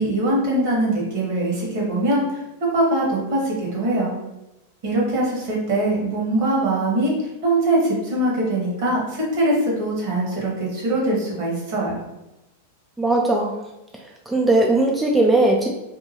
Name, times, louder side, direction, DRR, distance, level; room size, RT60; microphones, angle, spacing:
voice 1, 0.0-4.2 4.8-7.1 7.4-12.0, right 1 dB, 55° right, -3 dB, 1.1 m, -22 dB
voice 2, 13.0-13.6 14.3-15.7, right 2 dB, 5° right, -1 dB, 0.3 m, -18 dB
2.7 x 2.2 x 2.9 m, 0.95 s
figure-of-eight pair, 95°, 0 cm